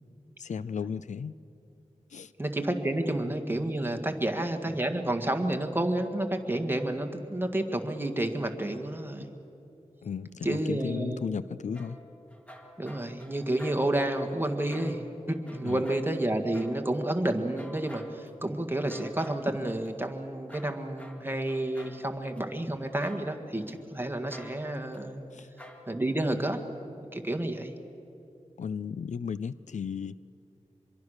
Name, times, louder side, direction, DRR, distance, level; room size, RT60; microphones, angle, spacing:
voice 1, 0.4-1.3 2.1-2.3 10.0-12.0 15.6-15.8 25.3-25.5 28.6-30.2, left 6 dB, 90° left, 17 dB, 0.5 m, -35 dB
voice 2, 2.4-9.4 10.4-11.3 12.8-25.2 25.9-26.6 27.0-27.8, right 1 dB, 20° right, 5 dB, 1.8 m, -30 dB
sound 1, 11.7-17.0 17.6-18.3 18.9-19.9 20.5-22.4 23.0-23.8 24.3-25.0 25.6-26.0, equal, 10° left, 2.0 m, -50 dB
25.5 x 22.5 x 6.6 m, 2.9 s
wide cardioid pair, 95°, 12 cm